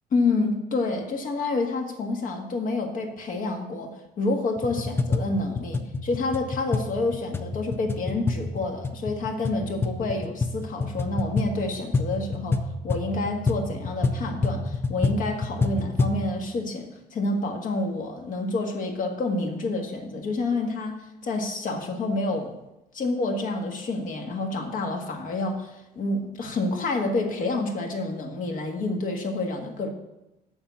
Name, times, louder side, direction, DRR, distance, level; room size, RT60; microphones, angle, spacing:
voice 1, 0.1-22.5 22.9-29.9, left 2 dB, 50° left, 3 dB, 1.7 m, -28 dB
sound 1, 4.6-16.2, left 3 dB, 15° left, 0.6 m, -28 dB
7.2 x 6.1 x 6.9 m, 0.94 s
cardioid pair, 110°, 17 cm